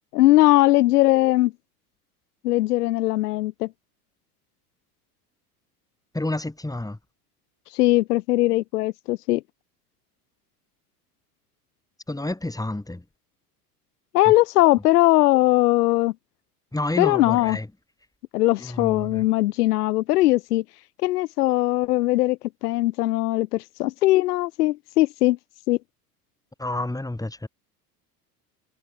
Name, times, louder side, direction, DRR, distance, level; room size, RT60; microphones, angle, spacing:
voice 1, 0.1-1.5 2.4-3.7 7.7-9.4 14.1-16.1 17.0-17.6 18.3-20.6 21.0-25.4 25.7-25.8, left 17 dB, 80° left, 1.2 m, -20 dB
voice 2, 6.1-7.0 12.1-13.0 14.3-14.4 16.7-17.7 18.6-19.3 26.6-27.5, left 2 dB, 10° left, 6.8 m, -29 dB
hypercardioid pair, 80°, 46 cm